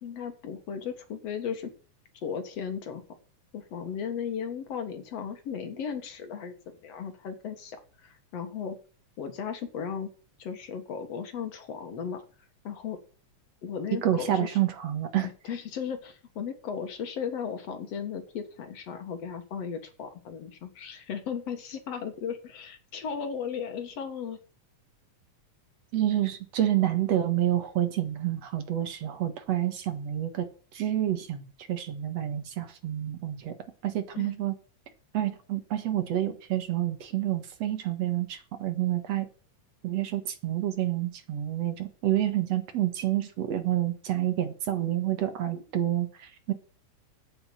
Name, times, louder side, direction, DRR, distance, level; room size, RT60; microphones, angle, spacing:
voice 1, 0.0-1.7 2.1-3.0 3.5-6.6 6.8-8.8 9.2-10.1 10.4-12.2 12.6-13.0 13.6-14.6 15.2-24.4 34.1-34.3, left 7 dB, 60° left, 7 dB, 2.6 m, -36 dB
voice 2, 14.0-15.3 25.9-30.5 30.7-33.5 33.8-34.5 35.1-39.3 39.8-46.5, right 12 dB, 65° right, 9 dB, 2.5 m, -28 dB
8.8 x 8.0 x 8.6 m, 0.38 s
omnidirectional pair, 3.3 m